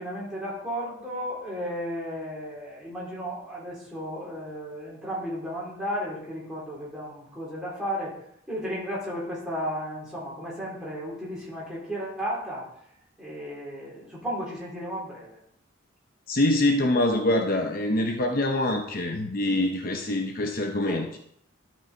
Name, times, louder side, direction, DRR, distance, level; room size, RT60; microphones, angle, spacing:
voice 1, 0.0-8.1 8.5-12.7 13.2-15.4 20.8-21.1, equal, 5° right, -7 dB, 4.0 m, -34 dB
voice 2, 16.3-21.2, left 1 dB, 45° left, 4 dB, 0.8 m, -25 dB
12.0 x 6.2 x 4.5 m, 0.71 s
head